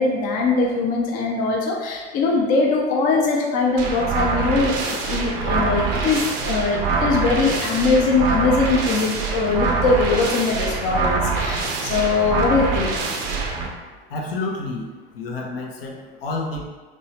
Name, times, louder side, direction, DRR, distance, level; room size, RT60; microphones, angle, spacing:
voice 1, 0.0-12.9, left 3 dB, 25° left, 0 dB, 0.4 m, -21 dB
sound 1, 3.8-13.7, right 4 dB, 40° right, 0.5 m, -24 dB
voice 2, 14.1-14.9 15.1-16.6, left 3 dB, 65° left, 0 dB, 0.7 m, -29 dB
3.0 x 2.6 x 3.0 m, 1.3 s
figure-of-eight pair, 80°, 32 cm